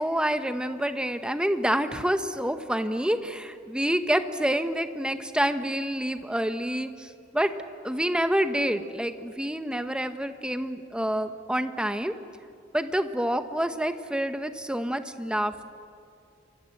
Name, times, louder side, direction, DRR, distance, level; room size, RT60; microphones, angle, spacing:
voice 1, 0.0-7.5 7.8-12.2 12.7-15.6, equal, 5° right, 9 dB, 1.0 m, -27 dB
29.0 x 25.5 x 7.9 m, 2.4 s
head